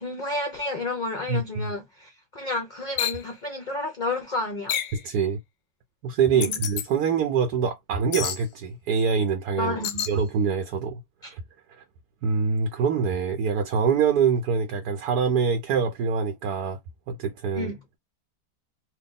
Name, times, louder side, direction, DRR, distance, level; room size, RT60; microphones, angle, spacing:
voice 1, 0.0-4.7 6.3-6.6 9.6-10.2 11.2-11.4 17.5-17.8, left 2 dB, 45° left, 0.6 m, -31 dB
voice 2, 1.3-1.7 5.0-5.4 6.0-9.8 10.1-11.0 11.3-11.4 11.8-11.9 12.2-16.8 17.1-17.7, right 6 dB, 75° right, 1.2 m, -24 dB
sound 1, 3.0-3.2 4.7-5.0 6.4-6.9 8.1-8.4 9.8-10.1, left 10 dB, 70° left, 0.9 m, -28 dB
2.9 x 2.8 x 3.6 m
omnidirectional pair, 1.8 m